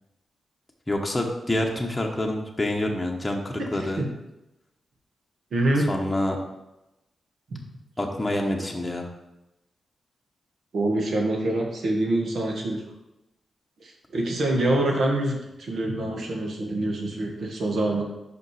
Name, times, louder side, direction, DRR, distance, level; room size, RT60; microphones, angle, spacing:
voice 1, 0.9-4.0 5.9-6.4 8.0-9.1, left 1 dB, 15° left, 0 dB, 1.0 m, -27 dB
voice 2, 5.5-5.8 7.5-7.6 10.7-12.8 13.8-18.0, right 1 dB, 70° right, 0 dB, 1.5 m, -25 dB
5.3 x 5.3 x 4.8 m, 0.94 s
cardioid pair, 70°, 0 cm